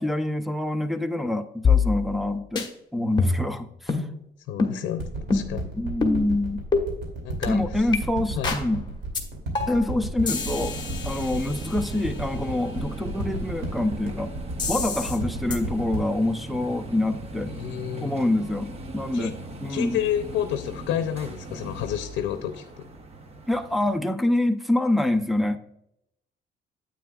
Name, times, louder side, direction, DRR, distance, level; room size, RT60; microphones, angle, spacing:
voice 1, 0.0-2.7 2.9-4.0 5.8-6.6 7.5-8.8 9.7-10.8 11.0-14.3 14.7-17.5 18.0-20.0 23.5-25.6, left 1 dB, ahead, 5 dB, 0.6 m, -26 dB
sound 1, 1.6-2.3 2.6-2.7 3.2-3.5 3.9-4.1 4.6-4.8 5.3-5.6 6.0-6.2 6.7-6.9 7.4-7.5 7.9-8.0 8.4-8.7 9.1-9.2 9.5-9.9 10.3-12.1 14.6-15.2 15.5-15.6, left 5 dB, 25° left, 1.2 m, -25 dB
voice 2, 4.5-5.7 7.2-7.9 8.4-8.6 17.5-18.2 19.1-19.3 19.7-22.9, left 10 dB, 85° left, 8 dB, 0.6 m, -30 dB
sound 2, 5.0-17.7 18.3-18.4, right 2 dB, 65° right, 2.7 m, -33 dB
sound 3, 10.2-24.0, right 2 dB, 35° right, 0.9 m, -39 dB
9.3 x 8.4 x 2.4 m, 0.77 s
cardioid pair, 130°, 19 cm